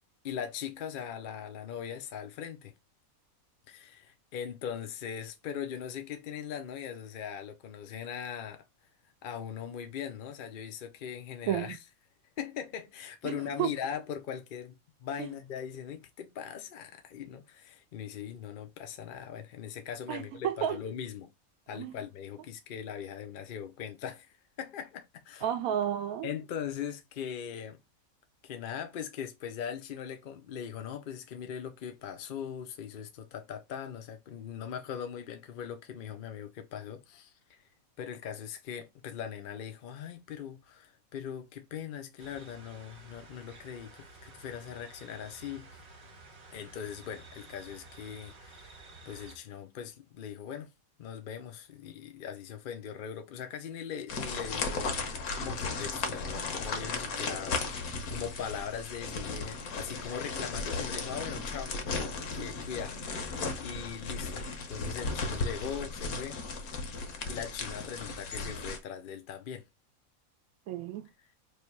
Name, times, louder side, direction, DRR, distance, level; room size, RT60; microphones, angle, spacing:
voice 1, 0.2-2.7 3.7-8.6 9.2-11.8 12.4-14.7 15.0-21.3 21.7-25.5 26.2-27.8 28.4-37.7 38.0-45.7 46.5-50.7 51.0-55.0 55.4-66.5 67.3-69.6, left 8 dB, 65° left, 0.5 m, -40 dB
voice 2, 11.5-11.8 13.2-13.3 13.6-13.7 15.2-15.3 20.1-20.8 21.7-22.0 25.4-26.3 70.7-71.0, right 10 dB, 85° right, 1.0 m, -31 dB
sound 1, 42.2-49.4, right 3 dB, 50° right, 1.4 m, -52 dB
sound 2, 54.1-68.8, left 3 dB, 90° left, 1.3 m, -35 dB
3.2 x 2.7 x 4.4 m
omnidirectional pair, 1.5 m